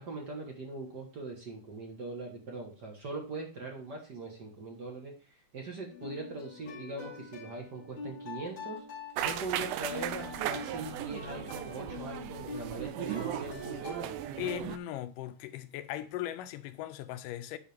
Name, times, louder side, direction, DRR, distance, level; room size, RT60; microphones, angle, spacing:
voice 1, 0.0-5.1 5.5-8.8 9.2-14.2, right 3 dB, 50° right, 1.3 m, -41 dB
sound 1, 5.9-14.5, left 5 dB, 40° left, 2.8 m, -45 dB
sound 2, 9.2-14.8, right 13 dB, 80° right, 2.0 m, -37 dB
voice 2, 14.4-17.6, left 12 dB, 85° left, 2.2 m, -38 dB
9.9 x 4.9 x 3.4 m
omnidirectional pair, 3.8 m